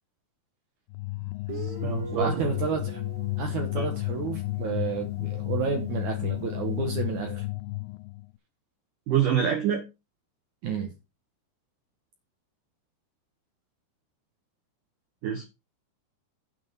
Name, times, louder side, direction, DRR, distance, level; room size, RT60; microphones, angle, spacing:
sound 1, 0.9-8.3, left 21 dB, 85° left, 2.6 m, -32 dB
Guitar, 1.5-5.0, right 5 dB, 45° right, 1.5 m, -42 dB
voice 1, 1.5-2.5 3.8-3.9 9.1-9.8 15.2-15.4, right 8 dB, 70° right, 4 dB, 2.0 m, -26 dB
voice 2, 2.1-3.0 3.4-7.4 10.6-10.9, right 5 dB, 85° right, 4 dB, 1.7 m, -31 dB
9.4 x 5.0 x 6.8 m, 0.26 s
omnidirectional pair, 5.8 m